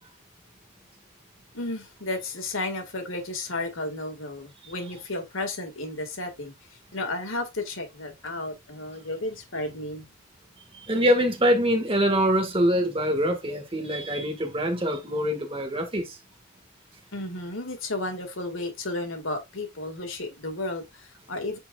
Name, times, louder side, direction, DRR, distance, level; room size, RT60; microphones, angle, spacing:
voice 1, 1.5-10.1 17.1-21.6, left 2 dB, 65° left, 2.1 m, -33 dB
voice 2, 10.9-16.2, equal, 25° right, 1.9 m, -24 dB
9.2 x 4.5 x 2.5 m
head